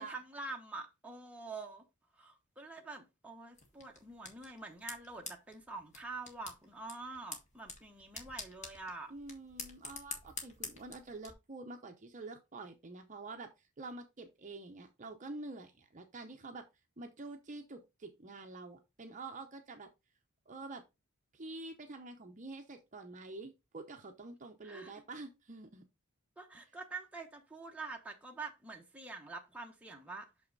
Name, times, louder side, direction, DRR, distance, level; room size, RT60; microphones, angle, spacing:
voice 1, 0.0-1.8 2.1-9.1 24.6-24.9 26.4-30.3, right 3 dB, 5° right, 1.0 m, -46 dB
sound 1, 3.5-11.3, left 3 dB, 30° left, 1.5 m, -48 dB
voice 2, 9.1-16.7 17.0-19.9 20.5-20.8 21.3-25.8, right 3 dB, 35° right, 0.7 m, -47 dB
6.1 x 5.6 x 3.9 m
head